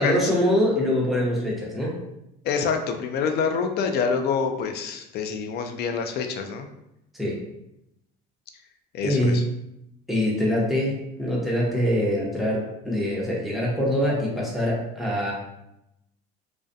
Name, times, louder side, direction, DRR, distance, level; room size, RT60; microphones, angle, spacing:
voice 1, 0.0-2.0 7.1-7.4 9.0-9.4 10.1-15.3, equal, ahead, -4 dB, 0.8 m, -24 dB
voice 2, 2.4-6.7 8.9-9.4, left 5 dB, 55° left, 6 dB, 0.4 m, -26 dB
2.3 x 2.1 x 2.6 m, 0.84 s
supercardioid pair, 90°, 20 cm